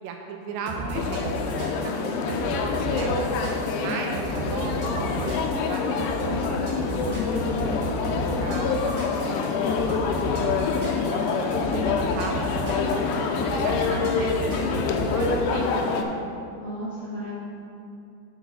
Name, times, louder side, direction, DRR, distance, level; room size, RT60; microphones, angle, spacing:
voice 1, 0.0-1.3 1.6-3.2 3.8-7.3 7.6-8.1 8.4-9.0 9.7-13.2 13.6-14.3 15.1-15.8, right 5 dB, 80° right, 2 dB, 2.8 m, -37 dB
sound 1, 0.7-15.4, right 2 dB, 60° right, 1.9 m, -33 dB
sound 2, 1.0-16.0, left 4 dB, 80° left, 2.5 m, -26 dB
voice 2, 3.8-4.1 13.9-14.2 15.8-17.3, right 1 dB, 35° left, -11 dB, 1.8 m, -36 dB
7.9 x 4.8 x 6.2 m, 2.6 s
omnidirectional pair, 4.9 m